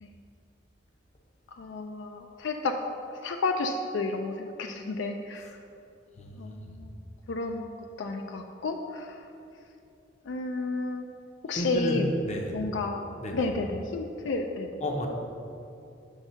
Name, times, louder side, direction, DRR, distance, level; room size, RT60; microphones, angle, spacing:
voice 1, 1.6-2.8 3.2-5.5 6.4-6.9 7.3-9.1 10.3-11.1 11.4-12.1 12.5-13.0 13.3-14.7, left 3 dB, 75° left, 4 dB, 0.4 m, -31 dB
voice 2, 6.2-6.7 11.6-12.6 13.2-13.4 14.8-15.1, equal, 35° left, 2 dB, 0.7 m, -32 dB
7.2 x 3.5 x 5.5 m, 2.6 s
head